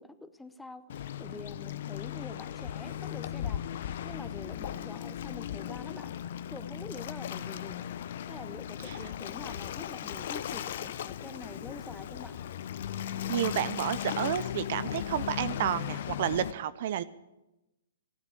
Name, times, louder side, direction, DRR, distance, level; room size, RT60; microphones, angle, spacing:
voice 1, 0.0-6.2 6.5-7.9 8.3-12.4, left 2 dB, 5° left, 11 dB, 0.8 m, -46 dB
Waves surf, 0.9-16.5, left 10 dB, 60° left, 0.7 m, -37 dB
voice 2, 13.3-17.0, right 11 dB, 55° right, 16 dB, 0.6 m, -31 dB
14.5 x 9.9 x 8.7 m, 0.98 s
hypercardioid pair, 125°, 0 cm